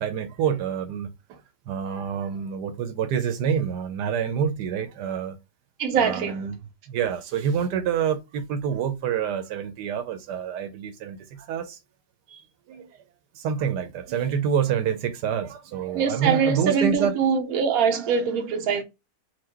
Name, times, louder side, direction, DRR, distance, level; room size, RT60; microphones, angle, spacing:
voice 1, 0.0-1.4 1.7-5.4 5.9-6.6 6.9-11.8 12.3-12.4 12.7-12.9 13.3-17.1, right 7 dB, 85° right, 1.3 m, -27 dB
voice 2, 5.8-6.4 15.9-18.8, right 6 dB, 60° right, 1.3 m, -23 dB
4.7 x 2.2 x 4.3 m
omnidirectional pair, 1.8 m